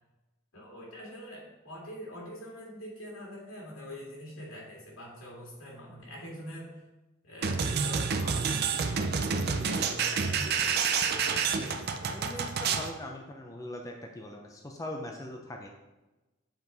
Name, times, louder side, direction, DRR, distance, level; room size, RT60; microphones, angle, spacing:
voice 1, 0.5-6.7 7.2-9.1 9.5-10.9 11.2-12.4, equal, 85° left, -3 dB, 2.3 m, -45 dB
sound 1, 7.4-12.9, right 5 dB, 50° right, 0.5 m, -29 dB
voice 2, 12.1-15.7, left 1 dB, 15° left, 2 dB, 0.6 m, -41 dB
7.6 x 4.5 x 4.0 m, 1.1 s
head